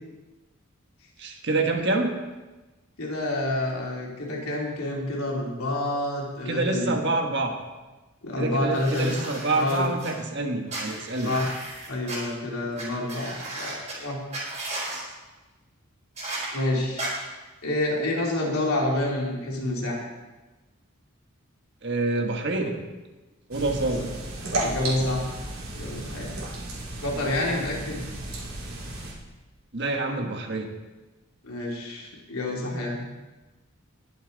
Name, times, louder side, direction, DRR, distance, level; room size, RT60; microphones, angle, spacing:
voice 1, 1.2-2.1 6.5-7.5 8.4-11.3 21.8-22.8 23.5-24.1 29.7-30.7, right 2 dB, 55° right, 3 dB, 1.5 m, -27 dB
voice 2, 3.0-6.9 8.2-9.1 9.5-9.9 11.2-11.5 11.9-14.2 14.9-15.0 16.5-17.1 17.6-20.1 24.6-25.3 25.7-26.3 27.0-28.0 31.4-33.0, left 1 dB, 85° left, -3 dB, 3.2 m, -28 dB
sound 1, 8.7-10.1 10.7-12.2 12.8-12.9 13.1-13.9 14.3-15.0 16.2-16.5 17.0-17.1, right 2 dB, 30° right, 4.1 m, -35 dB
sound 2, 23.5-29.1, right 1 dB, 80° right, 3.2 m, -34 dB
20.5 x 7.1 x 4.0 m, 1.2 s
head